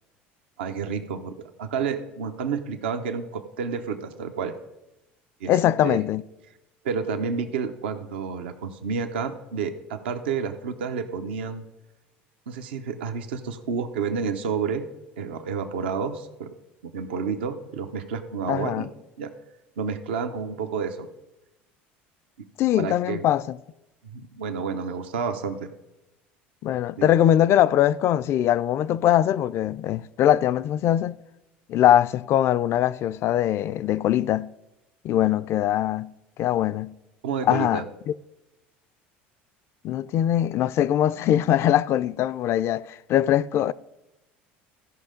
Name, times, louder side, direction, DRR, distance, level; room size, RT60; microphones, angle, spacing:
voice 1, 0.6-4.5 5.4-5.5 5.8-6.0 6.8-11.6 12.5-14.9 15.2-16.5 16.8-18.9 19.2-19.3 19.8-21.1 22.8-23.2 24.1-25.7 27.0-27.1 37.2-37.9, right 6 dB, 85° right, 0.7 m, -30 dB
voice 2, 5.5-6.2 18.5-18.9 22.6-23.6 26.6-31.2 31.7-34.5 35.0-36.1 36.4-36.9 37.4-37.8 39.8-43.7, left 11 dB, 50° left, 0.3 m, -22 dB
14.0 x 5.5 x 5.1 m
hypercardioid pair, 85°, 6 cm